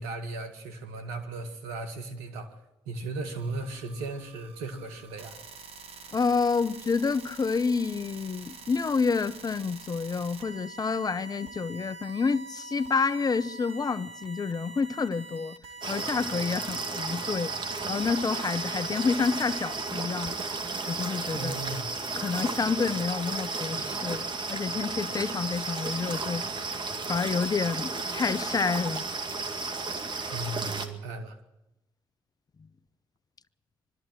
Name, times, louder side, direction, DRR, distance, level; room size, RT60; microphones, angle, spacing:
voice 1, 0.0-2.5 2.9-5.4 21.3-21.9 30.2-31.4, right 2 dB, 85° right, 1.9 m, -36 dB
sound 1, 3.3-19.9, right 4 dB, 60° right, 2.1 m, -45 dB
voice 2, 6.1-15.6 15.9-17.5 17.9-20.4 20.9-21.6 22.1-26.4 27.1-29.0, left 5 dB, 35° left, 0.8 m, -28 dB
sound 2, 15.8-30.9, right 3 dB, 45° right, 2.1 m, -33 dB
22.5 x 13.5 x 8.9 m
hypercardioid pair, 50°, 11 cm